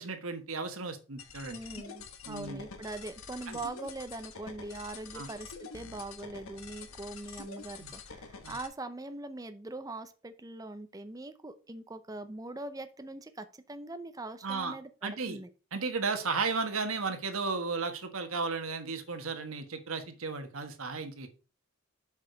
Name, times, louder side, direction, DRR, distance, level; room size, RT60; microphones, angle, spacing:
voice 1, 0.0-1.6 2.3-2.6 3.5-3.6 5.1-5.3 7.8-7.9 8.4-8.5 14.4-14.7 15.0-15.4 15.7-21.3, right 4 dB, 80° right, 7 dB, 1.4 m, -34 dB
sound 1, 1.2-8.7, left 5 dB, 85° left, 1.2 m, -47 dB
voice 2, 1.5-15.5, right 2 dB, 15° right, 10 dB, 0.6 m, -42 dB
7.3 x 4.9 x 5.1 m, 0.34 s
head